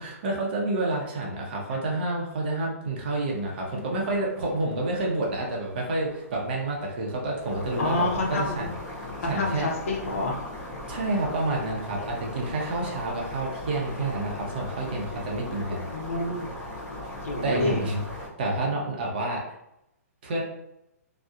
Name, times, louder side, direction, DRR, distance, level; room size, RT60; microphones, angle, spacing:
voice 1, 0.0-9.7 10.9-15.9 17.4-18.0 18.4-19.4 20.2-20.4, right 2 dB, 40° right, -2 dB, 0.6 m, -29 dB
sound 1, 3.1-18.3, left 1 dB, 30° left, 1.3 m, -39 dB
voice 2, 7.8-8.7 9.2-10.5 15.9-16.5 17.2-17.9, left 2 dB, 55° left, 0 dB, 0.6 m, -28 dB
2.6 x 2.0 x 2.3 m, 0.82 s
hypercardioid pair, 165°, 9 cm